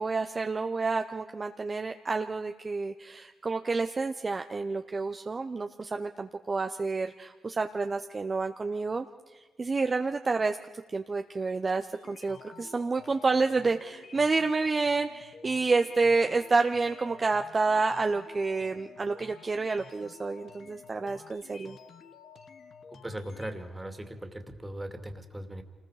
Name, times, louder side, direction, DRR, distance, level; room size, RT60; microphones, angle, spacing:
voice 1, 0.0-9.1 9.6-10.6 10.9-21.8, right 3 dB, 40° right, 7 dB, 0.8 m, -29 dB
sound 1, 11.9-23.5, left 6 dB, 65° left, 1.3 m, -51 dB
voice 2, 23.0-25.6, right 1 dB, 15° right, 6 dB, 2.5 m, -39 dB
27.0 x 20.5 x 5.0 m, 1.3 s
supercardioid pair, 55°, 0 cm